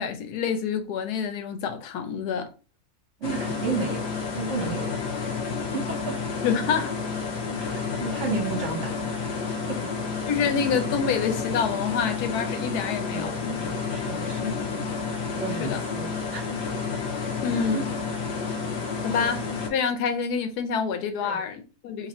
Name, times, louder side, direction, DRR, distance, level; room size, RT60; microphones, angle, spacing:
voice 1, 0.0-2.5 6.4-6.9 10.3-13.6 14.4-14.9 15.6-15.8 17.4-17.9 18.9-19.4 19.7-22.1, left 6 dB, 85° left, 1.2 m, -27 dB
sound 1, 3.2-19.7, left 5 dB, 50° left, 0.9 m, -30 dB
voice 2, 3.2-4.1 4.3-4.9 5.7-6.1 7.7-8.9 9.2-9.4 9.7-10.1 13.1-14.6 15.3-16.5 17.5-17.8 19.1-19.2 21.2-21.4, right 4 dB, 55° right, 1.1 m, -33 dB
2.8 x 2.6 x 4.1 m
omnidirectional pair, 1.7 m